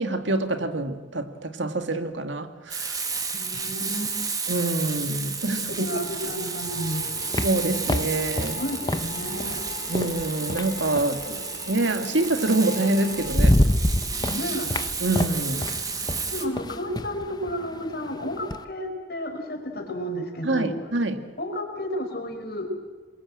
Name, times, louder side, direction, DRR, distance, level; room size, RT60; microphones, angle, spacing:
voice 1, 0.0-3.0 4.5-5.8 7.4-8.6 9.9-13.6 15.0-15.7 20.4-21.2, right 2 dB, 85° right, 7 dB, 2.1 m, -26 dB
Frying (food), 2.7-16.4, right 5 dB, 20° right, 2.2 m, -32 dB
voice 2, 3.3-4.1 5.7-7.4 8.1-9.6 14.3-14.7 16.3-20.7 21.4-22.7, equal, 55° left, 4 dB, 4.9 m, -32 dB
sound 1, 4.5-13.3, left 4 dB, 90° left, 2.3 m, -42 dB
sound 2, 6.6-11.2 12.5-12.6 13.0-18.6, left 1 dB, 20° left, 1.0 m, -27 dB
27.0 x 22.5 x 8.6 m, 1.3 s
head